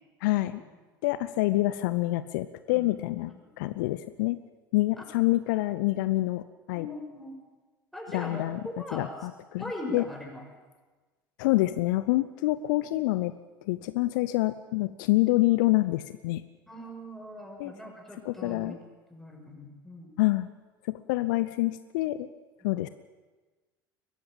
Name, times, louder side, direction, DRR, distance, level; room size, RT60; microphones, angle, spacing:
voice 1, 0.2-0.6 1.0-4.4 4.7-6.4 6.7-6.9 8.1-8.6 8.9-9.6 9.9-10.0 11.4-13.3 13.6-16.4 17.6-17.7 18.2-18.8 20.2-20.5 20.9-22.3 22.6-22.9, left 18 dB, 60° left, 14 dB, 0.7 m, -27 dB
voice 2, 6.7-7.3 7.9-9.1 9.6-10.4 16.7-18.8 19.1-20.1, left 1 dB, ahead, 0 dB, 6.6 m, -40 dB
22.0 x 15.5 x 8.9 m, 1.3 s
figure-of-eight pair, 70°, 12 cm